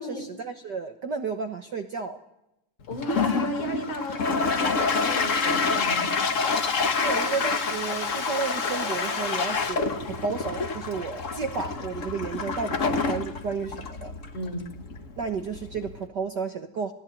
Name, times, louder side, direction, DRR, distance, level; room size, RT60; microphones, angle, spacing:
voice 1, 0.0-2.2 7.0-14.1 15.2-16.9, right 5 dB, 55° right, 7 dB, 1.2 m, -32 dB
voice 2, 2.9-6.1 14.3-14.7, equal, 80° left, 5 dB, 6.1 m, -34 dB
Toilet flush, 2.9-16.0, left 4 dB, 40° left, 1.2 m, -27 dB
28.5 x 20.0 x 9.3 m, 0.88 s
omnidirectional pair, 3.4 m